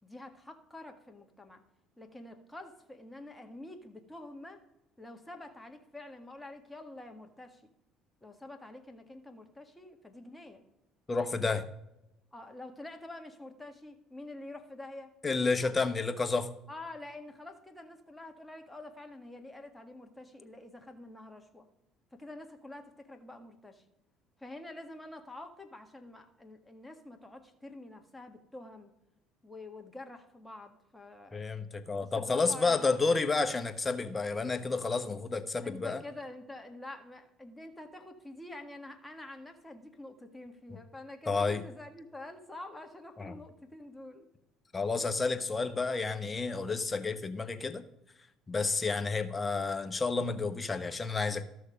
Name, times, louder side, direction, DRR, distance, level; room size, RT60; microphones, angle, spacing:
voice 1, 0.0-1.6 2.0-4.6 5.0-7.7 8.2-10.6 12.3-15.1 15.6-15.8 16.7-21.7 22.1-23.8 24.4-28.9 29.4-31.4 32.0-33.2 35.6-44.3, left 2 dB, 10° left, 5 dB, 1.7 m, -47 dB
voice 2, 11.1-11.6 15.2-16.5 31.3-36.0 41.3-41.6 43.2-43.3 44.7-47.8 48.5-51.4, left 4 dB, 25° left, 9 dB, 1.1 m, -30 dB
13.5 x 6.5 x 5.2 m, 0.87 s
supercardioid pair, 80°, 0 cm